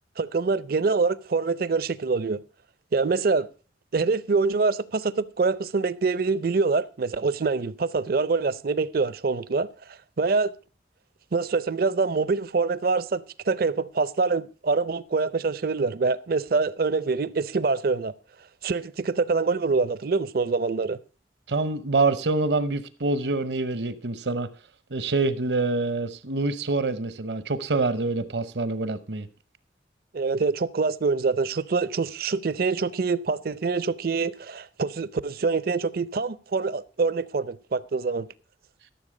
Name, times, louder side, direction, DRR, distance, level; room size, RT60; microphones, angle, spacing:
voice 1, 0.2-2.4 2.9-3.5 3.9-10.5 11.3-18.1 18.6-21.0 30.1-38.3, right 4 dB, 55° right, 0.5 m, -25 dB
voice 2, 21.5-24.5 24.9-29.3, right 3 dB, 70° right, 0.9 m, -26 dB
13.5 x 7.1 x 5.0 m
head